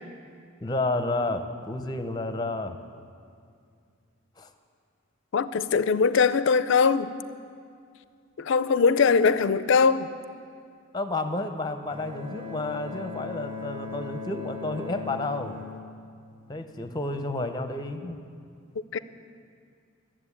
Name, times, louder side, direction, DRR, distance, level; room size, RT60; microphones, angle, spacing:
voice 1, 0.6-2.8 4.4-4.5 10.9-15.6 16.5-18.2, left 2 dB, 20° left, 8 dB, 0.7 m, -31 dB
voice 2, 5.3-7.1 8.4-10.1 18.9-19.0, left 5 dB, 60° left, 15 dB, 0.4 m, -21 dB
Bowed string instrument, 11.9-16.9, left 4 dB, 25° right, 1.2 m, -39 dB
13.0 x 7.5 x 8.4 m, 2.3 s
head